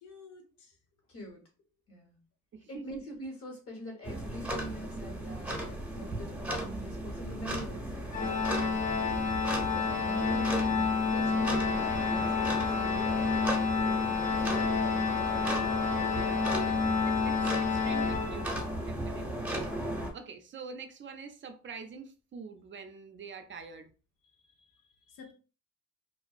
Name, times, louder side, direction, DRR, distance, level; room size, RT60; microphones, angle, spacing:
voice 1, 0.0-0.7 6.0-6.4 16.6-16.9 24.4-24.8 25.1-25.3, left 5 dB, 80° left, 0.7 m, -53 dB
voice 2, 1.1-1.4 1.9-2.2 2.7-8.5 9.3-14.6, equal, 50° left, 1.2 m, -45 dB
voice 3, 2.5-2.8 16.1-19.5 20.1-23.9, right 5 dB, 40° right, 0.4 m, -46 dB
sound 1, 4.0-20.1, right 1 dB, 5° right, 0.8 m, -36 dB
Organ, 8.1-18.9, left 5 dB, 25° left, 0.4 m, -29 dB
2.5 x 2.2 x 2.3 m
cardioid pair, 90°, 30 cm